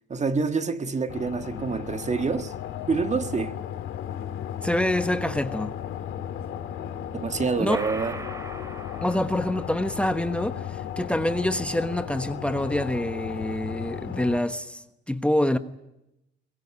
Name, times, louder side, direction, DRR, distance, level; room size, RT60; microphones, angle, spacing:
voice 1, 0.1-2.5 2.9-3.6 7.1-8.2, right 4 dB, 35° right, 1.7 m, -27 dB
sound 1, 1.1-14.4, left 10 dB, 90° left, 2.2 m, -35 dB
voice 2, 4.6-5.7 7.6-7.8 9.0-15.6, left 1 dB, 5° left, 1.3 m, -26 dB
sound 2, 7.7-10.1, right 2 dB, 15° right, 2.5 m, -39 dB
22.5 x 21.5 x 9.9 m
cardioid pair, 90°, 20 cm